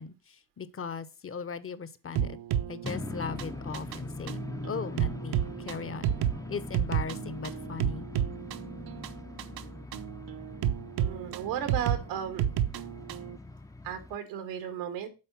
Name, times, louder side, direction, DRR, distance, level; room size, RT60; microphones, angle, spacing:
voice 1, 0.0-2.4 2.7-6.1 6.5-8.1, left 5 dB, 30° left, 0.9 m, -38 dB
sound 1, 2.2-13.4, right 10 dB, 60° right, 0.8 m, -32 dB
sound 2, 2.8-14.2, left 2 dB, 10° left, 0.5 m, -42 dB
voice 2, 11.0-12.5 13.8-15.1, right 9 dB, 90° right, 1.7 m, -35 dB
7.6 x 4.0 x 6.0 m
supercardioid pair, 65°, 42 cm